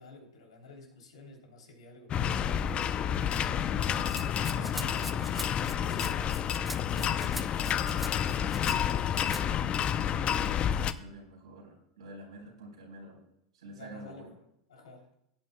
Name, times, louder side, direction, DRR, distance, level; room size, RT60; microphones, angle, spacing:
voice 1, 0.0-2.7 4.4-8.0 13.7-14.4 14.7-15.1, left 3 dB, 80° left, 1 dB, 3.2 m, -50 dB
sound 1, 2.1-10.9, left 9 dB, 35° left, 0.6 m, -29 dB
voice 2, 3.6-4.0 4.5-4.9 10.0-13.2 13.5-14.3, right 2 dB, 80° right, -1 dB, 4.2 m, -48 dB
Rattle (instrument), 4.1-8.8 9.1-9.4, right 1 dB, 5° right, 0.7 m, -44 dB
16.5 x 9.3 x 2.3 m, 0.78 s
hypercardioid pair, 90°, 3 cm